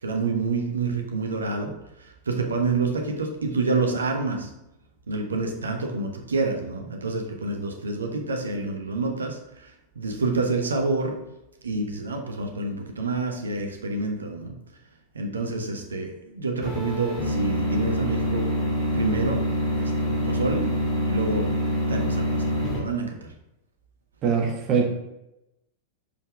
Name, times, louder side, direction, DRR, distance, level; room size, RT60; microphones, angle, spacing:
voice 1, 0.0-4.5 5.1-11.2 11.6-14.5 15.1-18.5 18.9-19.4 19.8-20.7 21.0-21.5 21.9-23.3, right 3 dB, 70° right, 3 dB, 1.1 m, -28 dB
sound 1, 16.6-22.8, left 1 dB, 25° left, 2.5 m, -25 dB
voice 2, 24.2-24.9, right 6 dB, 35° right, 1 dB, 1.6 m, -22 dB
6.8 x 5.6 x 3.6 m, 0.89 s
figure-of-eight pair, 90°, 0 cm